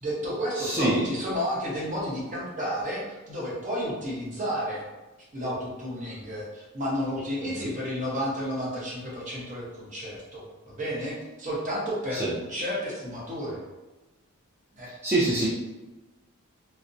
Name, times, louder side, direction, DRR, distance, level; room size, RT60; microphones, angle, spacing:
voice 1, 0.0-4.9 5.3-12.2 12.5-13.6 14.7-14.9, equal, 35° right, -6 dB, 0.7 m, -31 dB
voice 2, 0.5-1.1 7.6-7.7 12.1-12.3 15.0-15.5, right 2 dB, 10° right, -10 dB, 0.3 m, -25 dB
2.4 x 2.0 x 2.5 m, 1.1 s
head